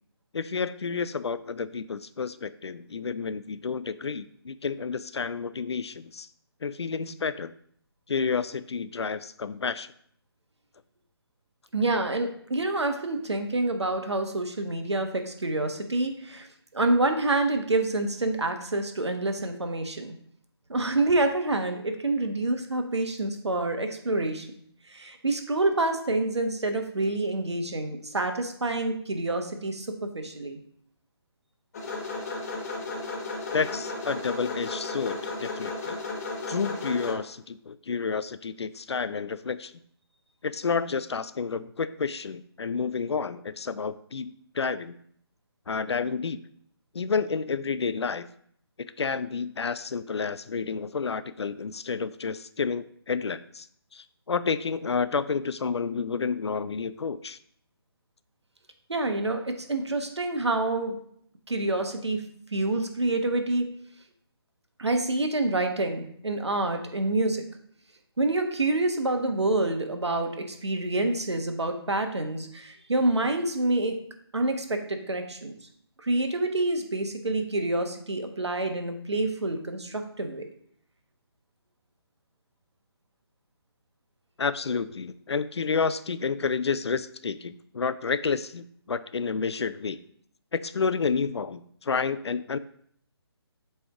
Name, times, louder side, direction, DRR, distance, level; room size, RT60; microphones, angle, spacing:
voice 1, 0.3-6.3 6.6-7.5 8.1-9.9 33.5-36.0 36.5-39.7 40.4-45.0 45.7-46.4 46.9-48.3 49.0-53.7 53.9-57.4 84.4-90.0 90.5-92.6, left 5 dB, 80° left, 14 dB, 0.4 m, -30 dB
voice 2, 11.7-16.5 16.7-20.1 20.7-24.5 24.9-30.6 58.9-61.0 61.5-62.2 62.5-63.7 64.8-67.5 68.2-74.0 74.3-75.5 76.0-80.4, right 2 dB, 85° right, 5 dB, 1.1 m, -27 dB
sound 1, 31.7-37.1, left 3 dB, 35° left, 1.3 m, -34 dB
7.8 x 3.4 x 3.5 m, 0.65 s
figure-of-eight pair, 150°, 14 cm